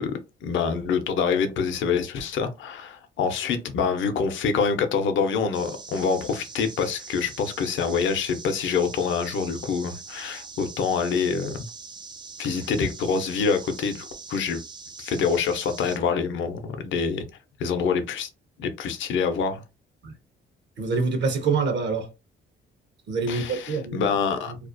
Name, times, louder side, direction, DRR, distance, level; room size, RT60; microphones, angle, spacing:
voice 1, 0.0-11.6 12.4-14.6 15.0-17.2 17.6-18.3 18.6-19.6 23.3-24.5, left 5 dB, 70° left, 0.6 m, -26 dB
sound 1, 5.5-16.0, right 4 dB, 25° right, 0.4 m, -42 dB
voice 2, 20.8-22.1 23.1-24.1 24.5-24.6, right 4 dB, 65° right, 0.7 m, -26 dB
2.4 x 2.1 x 2.5 m
cardioid pair, 90°, 20 cm